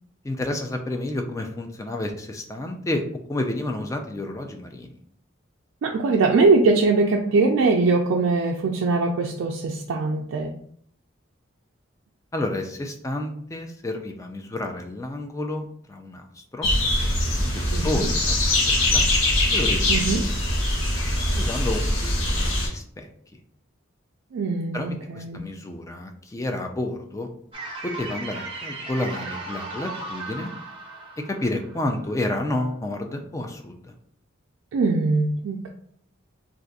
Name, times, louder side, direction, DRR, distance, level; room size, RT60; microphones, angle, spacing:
voice 1, 0.2-3.0 3.3-4.9 12.3-16.7 17.0-19.0 19.5-20.1 21.4-23.1 24.7-27.3 27.8-30.5 31.2-33.9, left 1 dB, 15° left, 4 dB, 0.3 m, -30 dB
voice 2, 5.8-10.6 17.7-18.1 19.9-20.2 24.3-25.4 34.7-35.7, right 3 dB, 75° right, 1 dB, 0.3 m, -22 dB
sound 1, 16.6-22.7, left 1 dB, 85° left, 1.3 m, -22 dB
sound 2, 27.5-32.6, right 2 dB, 25° right, 0.6 m, -37 dB
2.5 x 2.4 x 4.0 m, 0.64 s
head